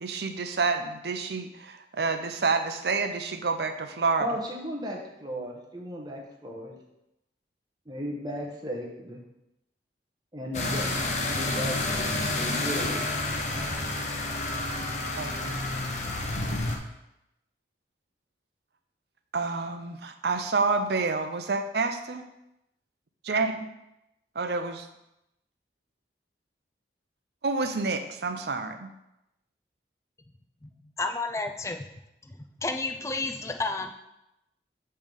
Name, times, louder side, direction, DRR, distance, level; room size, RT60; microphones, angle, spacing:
voice 1, 0.0-4.3 10.6-11.0 15.2-15.6 19.3-22.2 23.3-23.7 24.4-24.9 27.4-28.9, right 4 dB, 70° right, 7 dB, 0.6 m, -29 dB
voice 2, 4.2-6.8 7.9-9.2 10.3-10.8 11.3-13.1, equal, 25° right, -1 dB, 0.8 m, -35 dB
sound 1, 10.5-16.8, left 2 dB, 40° left, 0.7 m, -29 dB
voice 3, 31.0-31.8 32.3-33.9, left 3 dB, 15° left, 6 dB, 0.4 m, -31 dB
7.3 x 3.3 x 5.2 m, 0.89 s
head